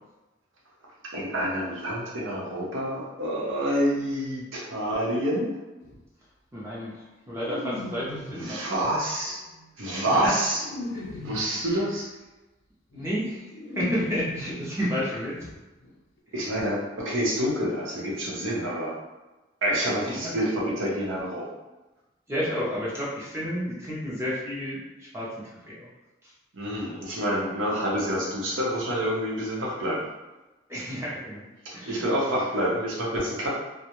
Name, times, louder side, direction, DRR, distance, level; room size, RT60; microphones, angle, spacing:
voice 1, 1.1-5.5 8.3-9.4 9.8-10.6 11.2-12.1 16.3-18.9 19.6-21.5 26.5-30.1 31.6-33.5, equal, 85° right, -4 dB, 0.7 m, -27 dB
sound 1, 5.8-6.0 7.4-8.5 9.3-11.6 12.9-13.0 13.3-15.6 15.8-15.9 16.2-16.3, left 2 dB, 70° left, 0.5 m, -39 dB
voice 2, 6.5-8.6 9.9-10.3 10.9-11.0 11.7-11.8 12.9-15.4 20.1-20.3 22.3-25.9 26.2-26.3 30.7-31.4 31.7-32.1 32.3-32.4, equal, 15° right, -7 dB, 0.4 m, -31 dB
2.3 x 2.0 x 2.9 m, 1.1 s
head